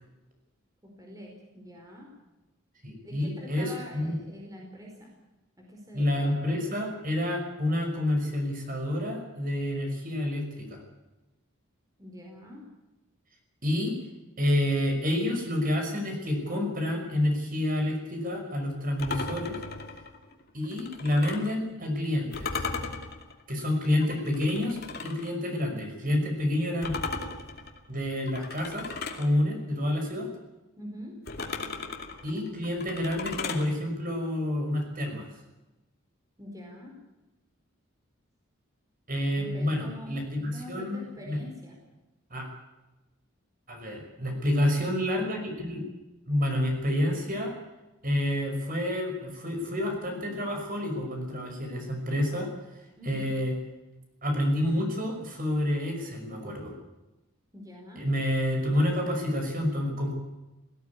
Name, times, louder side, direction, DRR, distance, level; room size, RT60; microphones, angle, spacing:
voice 1, 0.8-2.1 3.0-5.1 5.6-6.4 12.0-12.6 30.8-31.2 36.4-36.9 39.3-41.8 53.0-53.3 57.5-58.1, left 1 dB, 15° right, -1 dB, 4.7 m, -45 dB
voice 2, 2.8-4.2 5.9-10.8 13.6-13.9 14.4-19.6 20.5-22.6 23.5-27.0 27.9-28.9 29.1-30.3 32.2-35.3 39.1-41.0 41.3-41.4 42.3-42.5 43.7-45.8 46.3-47.5 48.0-52.5 53.0-53.6 54.2-56.7 58.0-60.2, left 1 dB, 40° right, 3 dB, 5.8 m, -28 dB
sound 1, 19.0-21.6 22.3-25.3 26.8-29.3 31.3-33.7, left 4 dB, 50° left, 2.6 m, -36 dB
18.0 x 17.5 x 9.6 m, 1.0 s
head